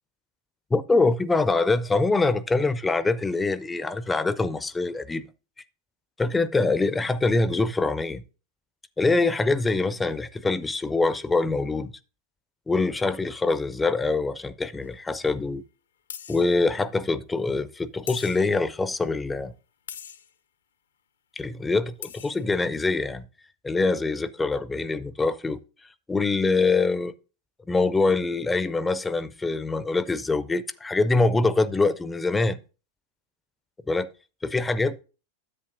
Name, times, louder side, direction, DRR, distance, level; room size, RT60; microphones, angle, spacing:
voice 1, 0.7-5.2 6.2-8.2 9.0-11.9 12.7-15.6 16.3-19.5 21.4-23.3 23.6-25.6 26.1-27.1 27.7-32.6 33.9-34.1 34.4-35.0, left 3 dB, 10° left, 0.4 m, -24 dB
sound 1, 14.8-14.9 16.1-16.5 18.1-18.7 19.9-20.3 21.7-21.8 22.0-22.5, left 9 dB, 65° left, 0.6 m, -40 dB
9.9 x 8.4 x 2.6 m
figure-of-eight pair, 90°, 0 cm